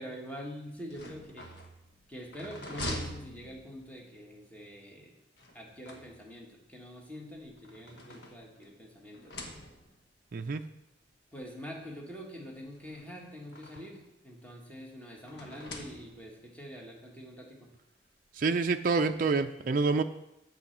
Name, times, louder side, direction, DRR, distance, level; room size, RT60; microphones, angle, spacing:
voice 1, 0.0-1.5 2.1-5.1 5.5-9.4 11.3-17.7, equal, 10° left, -2 dB, 1.7 m, -45 dB
sound 1, 0.8-4.1 5.4-6.5 7.4-8.8 9.1-10.1 11.0-11.1 11.4-11.5 12.7-14.1 15.3-16.4, left 1 dB, 70° left, 1.4 m, -44 dB
voice 2, 18.4-20.0, right 4 dB, 50° right, 6 dB, 0.4 m, -27 dB
8.5 x 5.6 x 7.3 m, 0.86 s
head